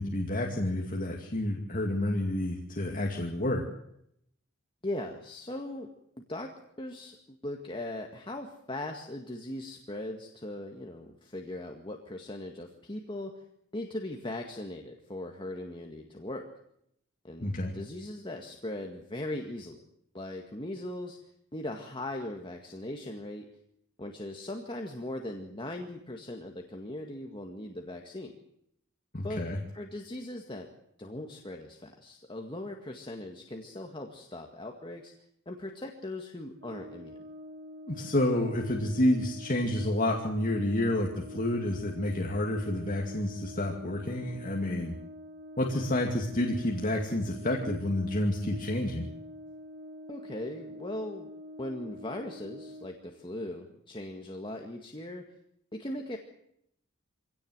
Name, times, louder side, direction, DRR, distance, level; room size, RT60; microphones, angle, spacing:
voice 1, 0.0-3.6 17.4-17.7 29.1-29.6 37.9-44.9 45.6-49.1, left 1 dB, 40° left, 2 dB, 2.4 m, -29 dB
voice 2, 4.8-5.9 6.3-13.4 13.7-16.5 17.2-19.8 20.1-21.2 21.5-23.5 24.0-28.4 29.2-29.4 29.7-30.7 31.0-35.1 35.5-37.2 50.1-51.3 51.6-55.3 55.7-56.2, left 1 dB, 25° left, 3 dB, 2.0 m, -39 dB
Brass instrument, 36.6-53.0, left 1 dB, 55° right, 3.3 m, -46 dB
25.5 x 17.5 x 8.0 m, 0.76 s
head